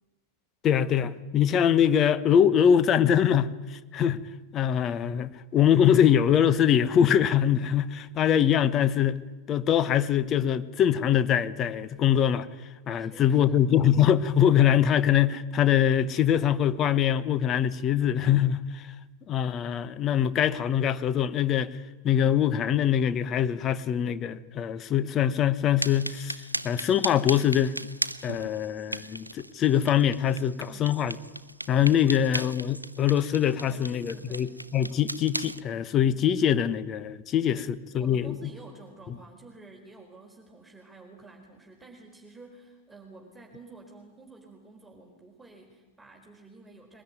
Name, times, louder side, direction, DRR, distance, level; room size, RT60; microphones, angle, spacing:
voice 1, 0.6-4.2 4.5-9.2 9.5-12.5 12.9-18.9 19.3-21.7 22.0-26.4 26.6-27.7 28.2-31.1 31.7-38.3, left 9 dB, 30° left, 1.2 m, -23 dB
voice 2, 13.0-13.6 30.7-31.0 32.1-32.2 33.7-34.5 37.5-47.0, right 3 dB, 5° right, 4.2 m, -50 dB
sound 1, 25.8-35.6, right 1 dB, 85° right, 0.7 m, -37 dB
23.0 x 20.0 x 9.5 m
figure-of-eight pair, 90°, 0 cm